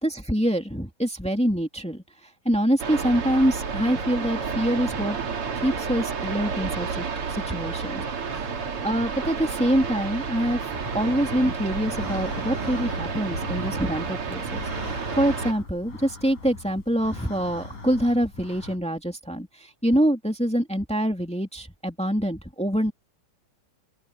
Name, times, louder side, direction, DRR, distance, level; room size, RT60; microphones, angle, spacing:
voice 1, 0.0-5.2 5.6-8.4 8.8-10.7 10.9-22.9, equal, ahead, 1.8 m, -25 dB
sound 1, 2.8-15.5, right 5 dB, 40° right, 2.9 m, -30 dB
sound 2, 10.7-18.8, left 3 dB, 55° left, 8.0 m, -40 dB
open air
omnidirectional pair, 4.2 m